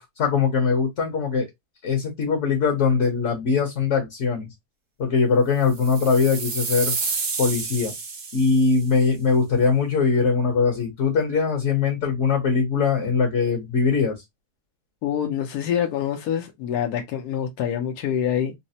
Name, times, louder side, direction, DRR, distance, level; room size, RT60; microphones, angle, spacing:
voice 1, 0.0-1.5 1.8-4.5 5.0-7.0 7.4-7.9 8.3-14.2, left 5 dB, 55° left, 1.1 m, -21 dB
sound 1, 5.7-8.9, right 4 dB, 50° right, 0.7 m, -30 dB
voice 2, 15.0-18.5, left 9 dB, 75° left, 1.2 m, -26 dB
4.0 x 2.1 x 2.6 m
omnidirectional pair, 1.7 m